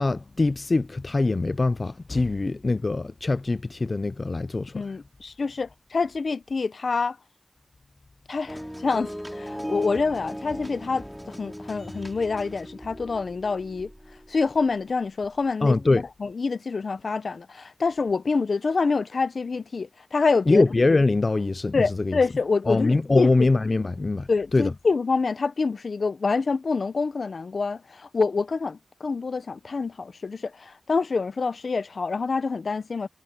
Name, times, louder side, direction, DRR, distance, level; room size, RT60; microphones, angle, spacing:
voice 1, 0.0-4.8 15.6-16.0 20.5-22.2 22.7-24.7, left 3 dB, 35° left, 0.4 m, -23 dB
voice 2, 4.7-7.2 8.3-13.9 14.3-15.8 16.2-20.6 21.7-23.5 24.3-33.1, left 4 dB, 60° left, 0.7 m, -26 dB
sound 1, 8.5-14.6 15.2-15.3, equal, ahead, 2.9 m, -38 dB
wide cardioid pair, 120°, 0 cm